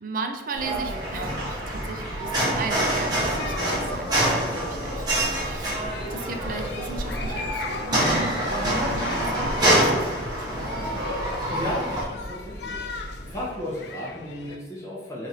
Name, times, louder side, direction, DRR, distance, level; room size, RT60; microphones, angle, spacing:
voice 1, 0.0-10.5, right 4 dB, 50° right, 4 dB, 0.4 m, -36 dB
sound 1, 0.5-12.0, right 1 dB, 25° right, 0.9 m, -26 dB
sound 2, 0.7-13.5, equal, 45° left, 1.0 m, -40 dB
sound 3, 3.4-14.6, left 4 dB, 65° left, 0.3 m, -40 dB
voice 2, 11.4-12.9 13.2-15.3, left 1 dB, 15° left, -6 dB, 0.7 m, -34 dB
3.1 x 2.5 x 4.0 m, 1.2 s
head